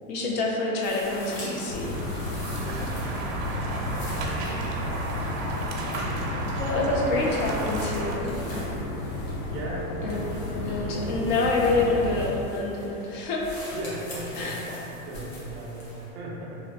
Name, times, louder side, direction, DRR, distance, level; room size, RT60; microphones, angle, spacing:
voice 1, 0.1-1.9 6.3-8.3 10.0-10.3 10.5-13.6 14.4-14.6, left 2 dB, 40° left, -2 dB, 0.4 m, -27 dB
sound 1, 0.8-16.1, left 1 dB, 70° left, 1.1 m, -43 dB
sound 2, 1.1-8.2, right 2 dB, 65° right, 0.7 m, -34 dB
sound 3, 1.7-12.3, left 2 dB, 85° left, 0.7 m, -33 dB
voice 2, 2.6-3.1 3.9-4.7 9.5-11.2 13.7-16.6, right 2 dB, 25° right, -4 dB, 0.4 m, -37 dB
3.0 x 2.4 x 2.8 m, 2.9 s
hypercardioid pair, 130°, 43 cm